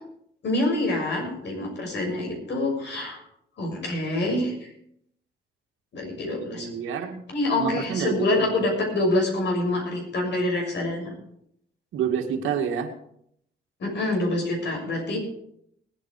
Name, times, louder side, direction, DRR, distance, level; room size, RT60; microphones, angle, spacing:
voice 1, 0.4-3.2 3.6-4.7 5.9-6.7 7.3-11.1 13.8-15.3, left 2 dB, 60° left, 1 dB, 6.5 m, -26 dB
voice 2, 6.5-7.2 7.6-8.6 11.9-12.9, right 7 dB, 80° right, 4 dB, 2.0 m, -28 dB
19.0 x 9.3 x 4.8 m, 0.72 s
cardioid pair, 90°, 20 cm